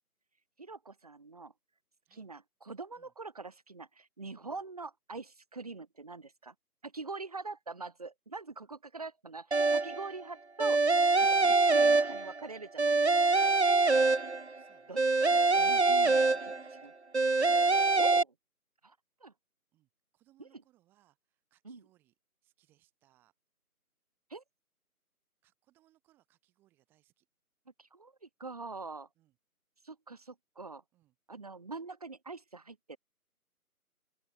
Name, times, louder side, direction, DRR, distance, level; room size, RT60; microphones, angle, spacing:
voice 1, 0.6-1.5 2.2-6.5 6.8-10.8 11.2-13.0 13.4-13.7 14.9-15.0 15.6-16.2 18.0-18.3 18.8-19.0 19.2-19.3 21.6-21.8 24.3-24.4 27.8-29.1 29.8-30.8 31.3-33.0, right 3 dB, 25° right, 2.5 m, -44 dB
sound 1, 9.5-10.1 10.6-12.5 12.8-14.6 15.0-16.8 17.1-18.2, right 3 dB, 45° right, 0.7 m, -25 dB
voice 2, 14.5-15.0 15.3-15.4 15.7-16.9 17.7-17.8 19.7-22.1 22.4-23.3 25.4-27.3 29.1-29.4 30.9-31.1, right 15 dB, 5° right, 6.8 m, -70 dB
open air
figure-of-eight pair, 175°, 45 cm